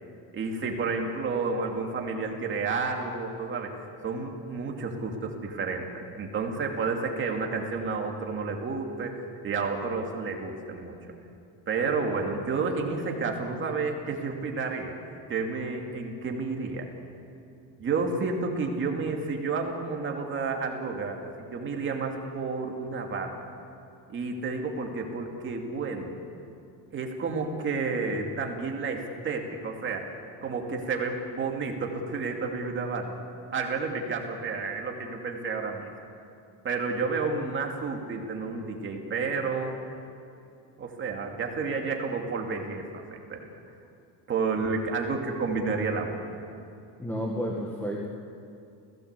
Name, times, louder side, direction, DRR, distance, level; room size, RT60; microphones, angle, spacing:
voice 1, 0.3-10.9 11.7-15.0 15.3-16.9 17.8-23.4 24.1-26.1 26.9-30.1 30.4-33.1 33.5-35.9 36.6-39.8 40.8-43.5 44.3-46.2, right 4 dB, 25° right, 2 dB, 2.5 m, -31 dB
voice 2, 47.0-48.1, equal, 5° left, -2 dB, 1.7 m, -31 dB
29.5 x 17.0 x 8.3 m, 2.6 s
cardioid pair, 180°, 43 cm